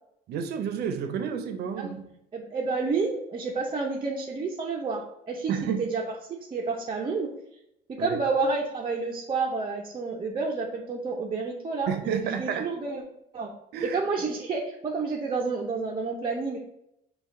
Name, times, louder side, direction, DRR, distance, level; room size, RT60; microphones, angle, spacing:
voice 1, 0.3-2.0 5.5-5.8 8.0-8.2 11.9-12.7 13.7-14.0, right 7 dB, 70° right, 8 dB, 0.6 m, -30 dB
voice 2, 2.3-6.0 6.4-7.3 7.9-13.0 13.3-13.5 13.8-16.6, right 4 dB, 30° right, -2 dB, 0.6 m, -30 dB
5.5 x 2.3 x 3.7 m, 0.80 s
cardioid pair, 110°, 17 cm